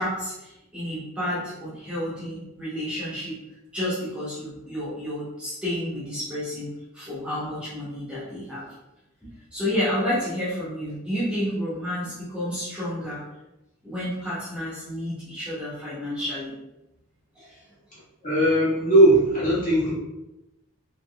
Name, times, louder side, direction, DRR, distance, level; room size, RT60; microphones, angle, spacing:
voice 1, 0.0-3.4 3.7-8.7 9.2-13.2 13.8-16.5 17.4-17.6, left 1 dB, 5° right, -11 dB, 0.9 m, -30 dB
voice 2, 18.2-19.9, right 1 dB, 40° left, -8 dB, 1.5 m, -18 dB
3.3 x 3.1 x 2.3 m, 0.94 s
head